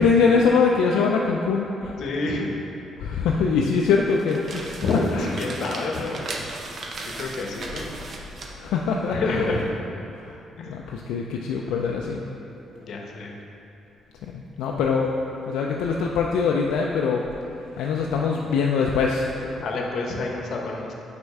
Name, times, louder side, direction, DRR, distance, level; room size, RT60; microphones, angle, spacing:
voice 1, 0.0-1.9 3.0-4.8 5.1-5.3 8.4-9.5 10.2-12.2 14.2-15.1 15.5-17.2 17.8-19.3, left 5 dB, 90° left, -1 dB, 0.3 m, -23 dB
voice 2, 2.0-2.5 4.8-6.4 7.0-7.9 9.1-9.6 10.6-10.8 12.7-13.4 19.6-20.9, left 3 dB, 65° left, 0 dB, 0.8 m, -28 dB
sound 1, 4.0-9.7, right 2 dB, 50° right, 0.7 m, -37 dB
5.3 x 4.3 x 4.7 m, 2.8 s
cardioid pair, 90°, 0 cm